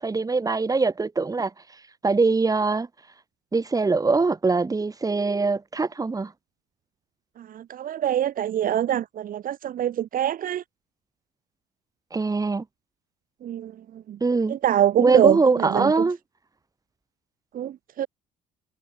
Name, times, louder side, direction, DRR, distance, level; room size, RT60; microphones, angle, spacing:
voice 1, 0.0-1.5 2.0-2.9 3.5-6.3 12.1-12.6 14.2-14.6 15.0-16.2, right 3 dB, 20° right, 5.6 m, -22 dB
voice 2, 7.4-10.6 13.4-14.2 14.5-16.1 17.5-18.1, right 11 dB, 55° right, 2.1 m, -25 dB
cardioid pair, 110°, 17 cm